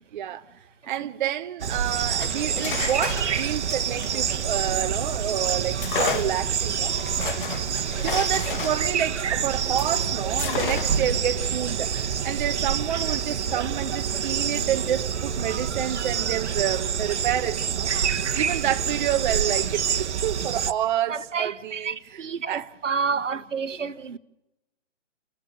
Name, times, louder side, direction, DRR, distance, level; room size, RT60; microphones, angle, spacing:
voice 1, 0.1-0.4 0.9-6.9 8.0-22.7, right 11 dB, 40° right, 0.9 m, -29 dB
sound 1, 1.6-20.7, right 7 dB, 65° right, 1.2 m, -27 dB
sound 2, 2.1-5.1 5.8-10.0 10.4-11.2, left 8 dB, 45° left, 1.2 m, -33 dB
voice 2, 3.1-3.4 21.1-24.2, right 6 dB, 80° right, 1.3 m, -30 dB
29.0 x 14.5 x 6.8 m
hypercardioid pair, 140°, 37 cm